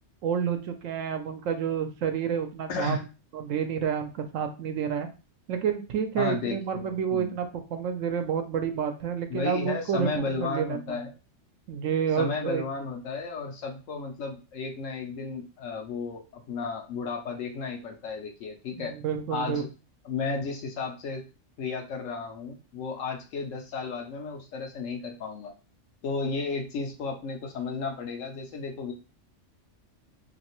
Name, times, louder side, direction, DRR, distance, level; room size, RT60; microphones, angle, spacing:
voice 1, 0.2-3.0 3.3-5.1 5.5-10.8 11.7-12.6 18.8-19.6, right 8 dB, 85° right, 6 dB, 0.9 m, -29 dB
voice 2, 2.7-3.0 6.2-7.4 9.3-11.1 12.2-18.9 19.3-19.7 20.0-21.3 21.6-25.5 26.0-28.9, left 4 dB, 80° left, 3 dB, 1.1 m, -33 dB
3.1 x 2.9 x 3.0 m, 0.32 s
omnidirectional pair, 1.3 m